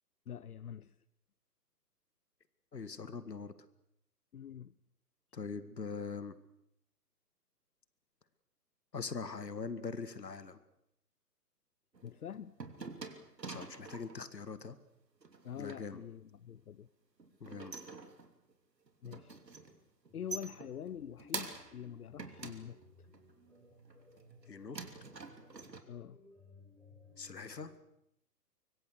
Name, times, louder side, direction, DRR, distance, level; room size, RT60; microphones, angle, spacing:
voice 1, 0.3-1.0 4.3-4.7 12.0-12.6 15.4-16.9 19.0-19.4 20.1-22.8 25.9-26.2, left 9 dB, 65° left, 18 dB, 0.9 m, -45 dB
voice 2, 2.7-3.5 5.3-6.3 8.9-10.6 13.5-14.8 15.6-16.0 17.4-17.7 24.5-24.8 27.2-27.7, left 5 dB, 80° left, 13 dB, 2.0 m, -42 dB
sound 1, 11.9-14.2 15.2-15.8 17.2-18.5 18.9-19.8 20.0-21.8 22.2-23.3 23.8-24.4 24.7-25.8, right 4 dB, 85° right, 3.2 m, -46 dB
sound 2, 20.1-27.7, left 2 dB, 5° left, 8.0 m, -61 dB
25.0 x 24.0 x 6.6 m, 0.77 s
figure-of-eight pair, 135°, 48 cm